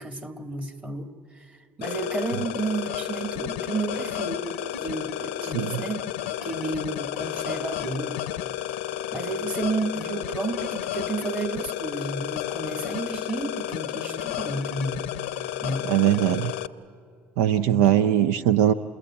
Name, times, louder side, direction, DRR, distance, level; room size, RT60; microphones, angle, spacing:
voice 1, 0.0-4.5 4.8-6.1 6.4-8.2 9.1-15.1 15.6-15.9 17.7-17.9, right 3 dB, 20° right, 6 dB, 2.0 m, -31 dB
sound 1, 1.8-16.7, left 12 dB, 85° left, 0.7 m, -32 dB
voice 2, 15.9-16.5 17.4-18.7, right 11 dB, 80° right, 13 dB, 0.5 m, -20 dB
28.0 x 20.0 x 8.7 m, 2.4 s
hypercardioid pair, 75°, 7 cm